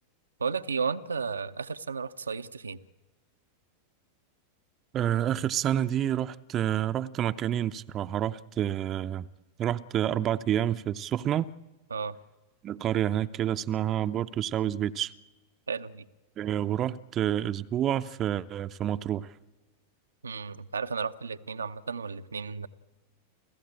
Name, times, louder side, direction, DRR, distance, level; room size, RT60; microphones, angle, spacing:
voice 1, 0.4-2.8 11.9-12.2 15.7-16.0 20.2-22.7, right 5 dB, 75° right, 0.7 m, -33 dB
voice 2, 4.9-9.3 9.6-11.5 12.6-15.1 16.4-19.3, right 11 dB, 30° right, 0.7 m, -28 dB
29.5 x 15.0 x 8.7 m
figure-of-eight pair, 90°, 0 cm